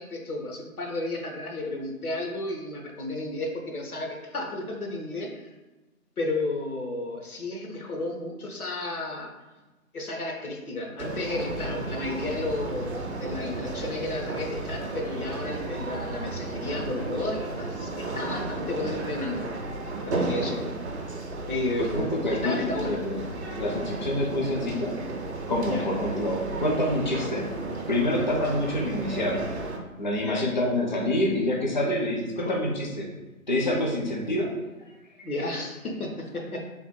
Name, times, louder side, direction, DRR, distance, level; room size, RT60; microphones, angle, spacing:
voice 1, 0.0-5.3 6.2-9.3 9.9-19.5 20.1-20.7 21.4-23.0 25.7-25.9 28.5-28.6 30.2-30.5 32.4-32.5 35.2-36.7, left 2 dB, 80° left, 0 dB, 1.0 m, -32 dB
sound 1, 11.0-29.8, right 2 dB, 50° right, 0.6 m, -34 dB
voice 2, 21.8-23.3 23.6-25.0 25.5-27.5 27.9-29.4 30.0-33.1 33.5-34.5 35.2-35.3, left 1 dB, 35° left, -1 dB, 0.5 m, -27 dB
3.4 x 2.2 x 4.3 m, 1.1 s
figure-of-eight pair, 150°, 43 cm